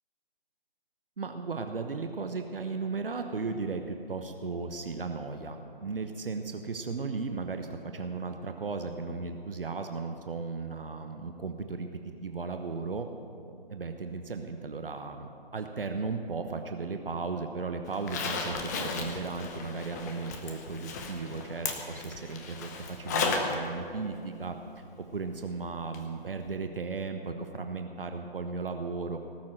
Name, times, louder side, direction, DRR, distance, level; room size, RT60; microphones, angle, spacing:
voice 1, 1.2-13.1 13.7-29.2, right 4 dB, 70° right, 6 dB, 1.1 m, -36 dB
Zipper (clothing), 17.9-23.6 23.9-24.0 25.9-26.0 26.4-26.5, left 4 dB, 20° left, 0.9 m, -34 dB
18.5 x 7.4 x 7.7 m, 2.6 s
figure-of-eight pair, 145°, 29 cm